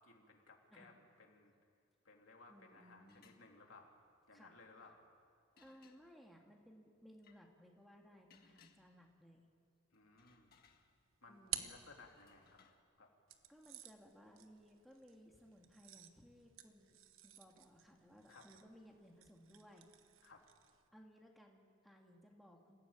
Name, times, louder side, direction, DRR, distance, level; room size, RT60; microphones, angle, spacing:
voice 1, 0.0-1.5 2.0-4.0 4.3-5.0 9.9-10.6 11.2-12.6 13.0-13.1 18.3-18.4 20.2-20.4, left 3 dB, 80° left, 1 dB, 3.1 m, -61 dB
voice 2, 2.5-3.3 4.3-4.5 5.6-9.5 11.3-11.7 13.5-19.9 20.9-22.8, equal, ahead, 0 dB, 2.0 m, -62 dB
sound 1, 3.0-3.4 5.6-6.3 7.2-7.4 8.3-9.2 9.9-11.3 12.0-12.8, left 6 dB, 50° left, 1.6 m, -69 dB
sound 2, 10.8-12.6 13.3-20.9, right 11 dB, 85° right, 1.2 m, -52 dB
27.5 x 15.5 x 8.8 m, 2.2 s
head